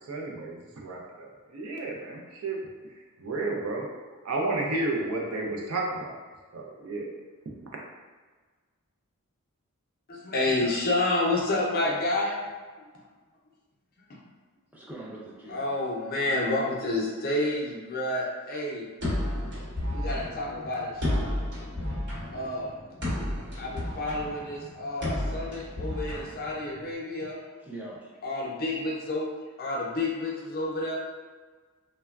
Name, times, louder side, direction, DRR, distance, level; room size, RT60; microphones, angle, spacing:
voice 1, 0.0-2.6 3.2-3.9 4.2-6.2 6.5-7.1, right 2 dB, 70° right, -1 dB, 0.5 m, -32 dB
voice 2, 10.1-12.4 14.1-14.2 15.5-18.9 19.9-21.4 22.3-22.8 23.6-27.4 28.2-29.3 29.6-31.0, left 2 dB, 45° left, -3 dB, 0.5 m, -29 dB
voice 3, 14.7-15.7 27.5-28.1, right 2 dB, 10° right, -6 dB, 0.5 m, -42 dB
sound 1, 19.0-26.9, left 1 dB, 50° right, 1.0 m, -32 dB
3.3 x 2.1 x 2.3 m, 1.4 s
head